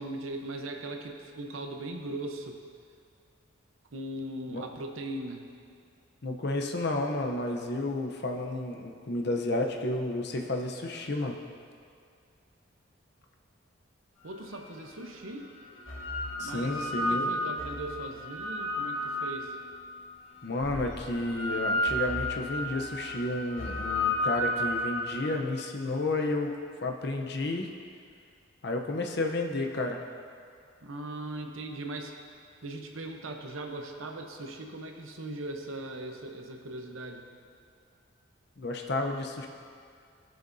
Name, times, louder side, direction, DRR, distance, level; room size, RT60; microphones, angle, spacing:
voice 1, 0.0-2.5 3.9-5.4 14.2-15.5 16.4-19.6 30.8-32.1 32.6-37.2, right 1 dB, 80° right, 3 dB, 0.8 m, -39 dB
voice 2, 6.2-11.4 16.4-17.3 20.4-26.5 26.8-27.7 28.6-30.0 38.6-39.5, left 2 dB, 55° left, 2 dB, 0.7 m, -31 dB
sound 1, 14.5-14.6 15.6-19.9 20.6-25.3, left 1 dB, 80° left, 1.4 m, -32 dB
15.0 x 6.7 x 2.7 m, 2.2 s
head